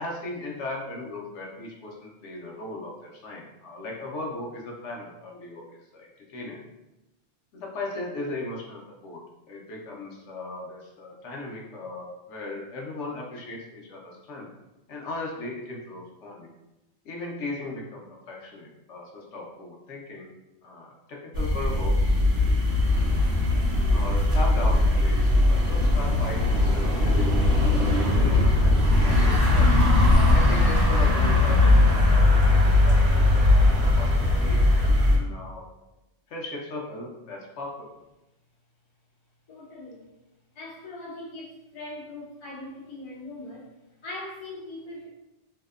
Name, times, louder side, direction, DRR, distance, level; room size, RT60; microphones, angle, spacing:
voice 1, 0.0-6.6 7.5-9.2 9.5-14.5 14.9-16.5 17.0-20.3 20.6-22.0 23.9-29.7 30.3-35.6 36.3-37.9, left 2 dB, 80° left, -1 dB, 0.9 m, -37 dB
sound 1, 21.3-35.2, left 2 dB, 60° right, 0.7 m, -20 dB
voice 2, 39.5-40.1 40.5-43.7 44.0-45.1, left 2 dB, 45° left, -4 dB, 0.4 m, -40 dB
2.7 x 2.0 x 2.3 m, 0.97 s
omnidirectional pair, 1.2 m